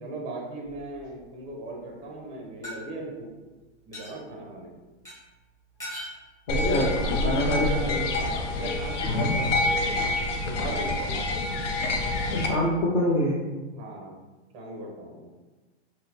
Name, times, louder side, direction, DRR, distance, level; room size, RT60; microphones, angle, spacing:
voice 1, 0.0-3.3 3.9-4.7 6.5-7.7 8.1-10.1 10.4-11.2 13.7-14.2 14.5-15.3, right 2 dB, 15° right, -1 dB, 0.5 m, -36 dB
sound 1, 0.6-1.3 2.6-2.8 3.9-4.2 5.0-5.1 5.8-6.2, equal, 10° left, 0.9 m, -39 dB
sound 2, 6.5-12.5, left 2 dB, 85° left, 0.6 m, -27 dB
voice 2, 6.5-6.9 7.2-8.0 11.6-11.9 12.3-13.4, left 1 dB, 45° left, -5 dB, 0.7 m, -26 dB
3.9 x 2.0 x 2.7 m, 1.2 s
hypercardioid pair, 130°, 35 cm